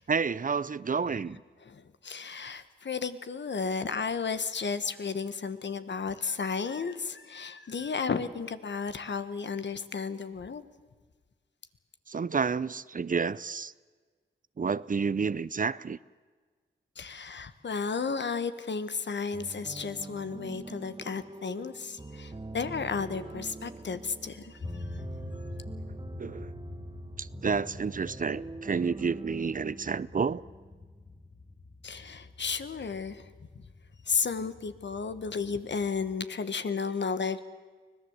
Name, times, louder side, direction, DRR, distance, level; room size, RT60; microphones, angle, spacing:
voice 1, 0.1-1.4 12.1-13.7 14.6-16.0 26.2-26.5 27.2-30.4, right 5 dB, 45° right, 0.6 m, -30 dB
voice 2, 1.7-10.6 17.0-24.6 31.8-33.2 33.5-33.6 34.1-37.4, left 5 dB, 65° left, 1.3 m, -33 dB
sound 1, 19.3-31.0, right 2 dB, 20° right, 1.4 m, -44 dB
sound 2, 24.6-36.2, left 2 dB, 35° left, 3.0 m, -47 dB
24.5 x 17.5 x 8.1 m
cardioid pair, 50°, 20 cm